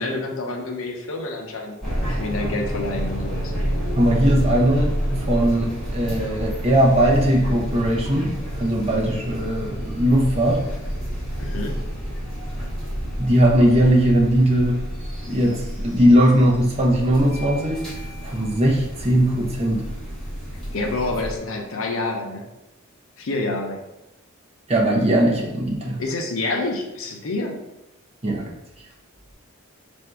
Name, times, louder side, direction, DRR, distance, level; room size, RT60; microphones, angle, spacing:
voice 1, 0.0-1.7 2.2-3.5 11.4-11.8 20.7-22.4 23.2-23.8 26.0-27.6, left 2 dB, 75° left, 2 dB, 0.7 m, -27 dB
sound 1, 1.8-21.4, equal, 5° left, 1.3 m, -29 dB
voice 2, 3.9-4.9 5.2-8.3 8.6-10.6 13.2-14.8 15.2-17.8 18.2-19.9 24.7-26.0 28.2-28.5, right 1 dB, 30° right, -2 dB, 0.7 m, -19 dB
3.3 x 2.6 x 4.6 m, 0.96 s
head